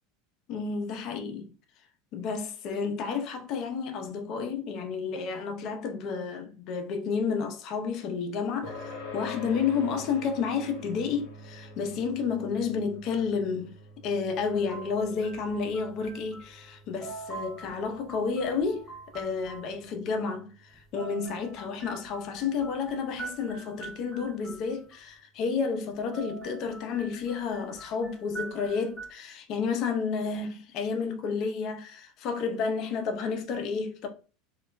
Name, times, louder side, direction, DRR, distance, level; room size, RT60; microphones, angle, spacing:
voice 1, 0.5-1.5 2.1-13.7 14.0-34.1, left 5 dB, 50° left, 0.5 m, -31 dB
sound 1, 8.6-23.5, left 2 dB, 70° left, 0.9 m, -47 dB
sound 2, 14.5-16.7 17.0-19.7 20.7-25.0 25.9-29.1, right 3 dB, 10° right, 1.0 m, -44 dB
2.2 x 2.1 x 3.2 m
supercardioid pair, 110°, 0 cm